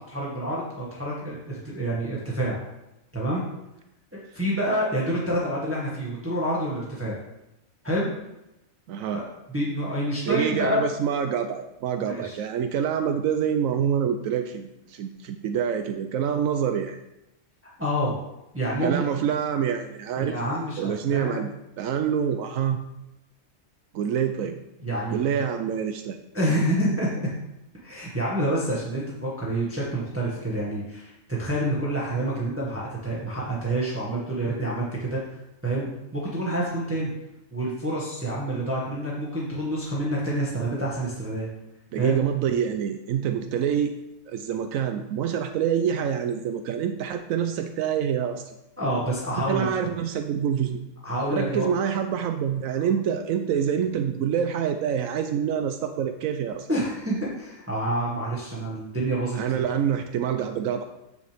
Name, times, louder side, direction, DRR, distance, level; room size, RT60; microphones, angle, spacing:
voice 1, 0.1-2.6 3.1-3.5 4.1-7.1 7.8-8.1 9.1-9.2 9.5-10.8 12.0-12.3 17.8-18.2 18.5-19.0 20.2-21.4 24.8-25.4 26.3-27.1 27.8-31.1 31.4-35.2 35.6-37.1 37.5-41.5 42.0-42.2 48.8-49.7 51.0-51.7 56.7-59.7, right 1 dB, 10° right, -6 dB, 1.8 m, -28 dB
voice 2, 8.9-9.2 10.2-17.0 18.8-20.4 20.8-22.8 23.9-24.6 25.1-26.2 41.9-43.9 44.3-48.6 49.5-50.8 51.3-56.7 59.4-60.8, right 8 dB, 80° right, 7 dB, 1.0 m, -26 dB
9.2 x 6.6 x 3.5 m, 0.91 s
omnidirectional pair, 1.4 m